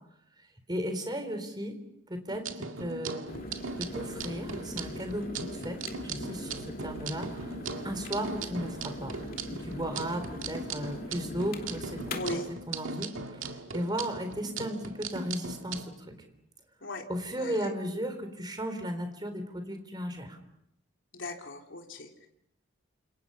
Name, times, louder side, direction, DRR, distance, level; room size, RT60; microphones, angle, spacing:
voice 1, 0.7-1.8 2.1-2.4 2.8-3.2 3.8-5.3 5.5-7.6 7.8-9.1 9.5-12.2 12.7-15.9 17.1-20.4, equal, 20° right, 6 dB, 3.9 m, -35 dB
sound 1, 2.3-15.8, right 4 dB, 75° right, 2.1 m, -39 dB
sound 2, 3.3-12.4, left 1 dB, 45° left, 2.9 m, -41 dB
voice 2, 12.1-12.5 16.8-17.1 17.4-17.7 21.1-22.3, left 2 dB, 65° left, 2 dB, 3.6 m, -39 dB
29.5 x 27.0 x 5.7 m, 0.78 s
head